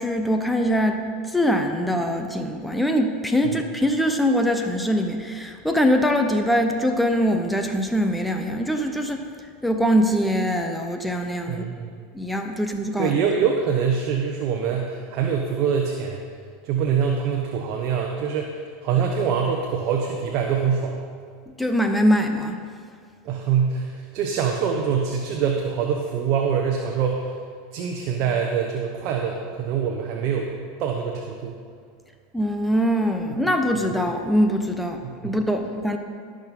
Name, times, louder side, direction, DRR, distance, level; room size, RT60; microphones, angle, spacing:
voice 1, 0.0-9.3 9.6-11.6 12.1-13.1 21.6-22.6 32.3-36.0, equal, 5° left, 5 dB, 0.9 m, -23 dB
voice 2, 11.5-11.9 13.0-16.2 16.6-21.0 23.2-27.3 27.7-30.5 30.8-31.6 35.0-35.3, right 7 dB, 55° right, 1 dB, 1.1 m, -24 dB
15.0 x 6.5 x 5.4 m, 2.1 s
hypercardioid pair, 105°, 0 cm